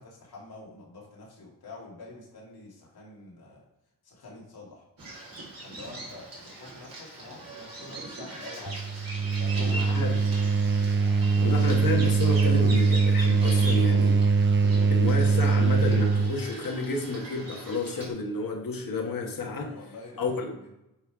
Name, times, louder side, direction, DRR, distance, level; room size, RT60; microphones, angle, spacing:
voice 1, 0.0-3.6 4.0-4.8 5.6-8.8 9.1-10.2 10.9-11.5 19.5-20.2, left 3 dB, 90° left, -4 dB, 2.4 m, -47 dB
Bird vocalization bird call bird song, 5.0-18.1, right 2 dB, 70° right, 2.9 m, -41 dB
sound 1, 8.7-16.4, right 4 dB, 35° right, 0.4 m, -22 dB
voice 2, 9.7-10.2 11.3-14.2 14.9-19.8 20.2-20.7, left 3 dB, 65° left, 2 dB, 1.5 m, -31 dB
9.3 x 3.3 x 4.9 m, 0.91 s
cardioid pair, 70°, 36 cm